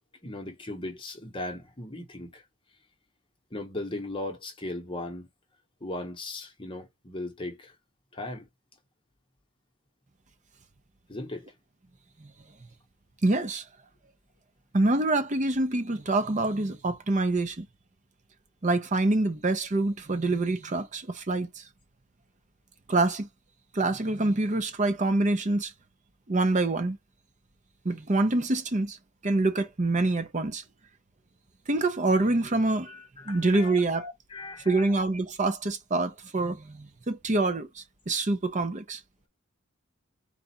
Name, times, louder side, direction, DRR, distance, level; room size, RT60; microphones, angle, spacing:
voice 1, 0.2-2.4 3.5-5.3 5.8-7.7 8.1-8.5 11.1-11.5 32.9-33.8 34.3-34.9, left 2 dB, 25° left, 1.0 m, -37 dB
voice 2, 13.2-13.6 14.7-17.7 18.6-21.6 22.9-23.3 23.7-25.7 26.3-27.0 27.8-29.0 29.2-30.6 31.7-32.9 33.2-34.1 34.7-39.0, right 2 dB, 35° right, 0.7 m, -26 dB
4.1 x 2.4 x 4.2 m
head